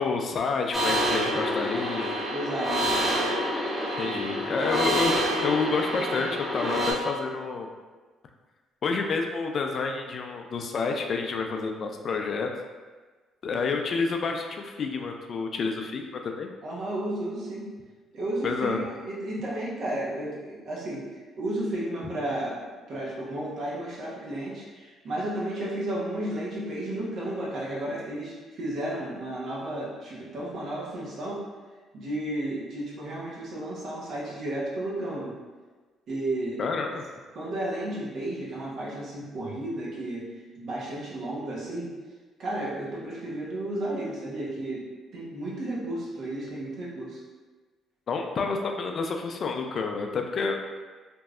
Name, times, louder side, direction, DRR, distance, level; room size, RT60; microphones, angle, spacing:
voice 1, 0.0-2.1 4.0-5.1 5.4-7.7 8.8-12.5 13.4-16.5 18.4-18.8 36.6-37.0 48.1-50.6, left 4 dB, 55° left, 4 dB, 0.3 m, -29 dB
sound 1, 0.7-6.9, equal, 10° right, 1.0 m, -27 dB
voice 2, 2.3-3.3 4.1-4.2 13.5-13.7 16.6-17.7 18.1-21.1 21.4-22.6 22.9-31.4 31.9-35.3 36.1-36.6 37.3-40.3 40.6-41.9 42.4-44.9 45.1-47.2, right 1 dB, 65° right, -5 dB, 0.9 m, -33 dB
3.0 x 2.6 x 2.4 m, 1.4 s
supercardioid pair, 70°, 0 cm